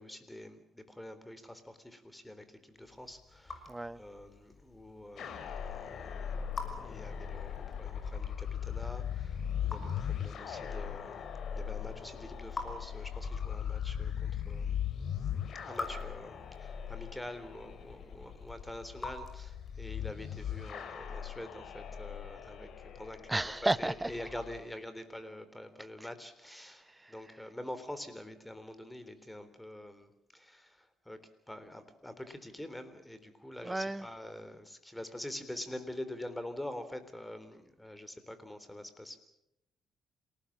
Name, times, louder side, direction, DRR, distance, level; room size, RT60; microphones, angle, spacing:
voice 1, 0.0-6.3 6.8-14.8 15.6-39.2, left 1 dB, 10° left, 3.7 m, -46 dB
Raindrop / Drip, 2.8-19.9, left 3 dB, 35° left, 6.1 m, -49 dB
voice 2, 3.7-4.0 23.3-24.1 26.9-27.1 33.6-34.1, right 2 dB, 10° right, 0.8 m, -33 dB
sound 1, 5.2-24.6, left 8 dB, 65° left, 3.6 m, -39 dB
27.5 x 18.5 x 7.4 m
cardioid pair, 90°, 0 cm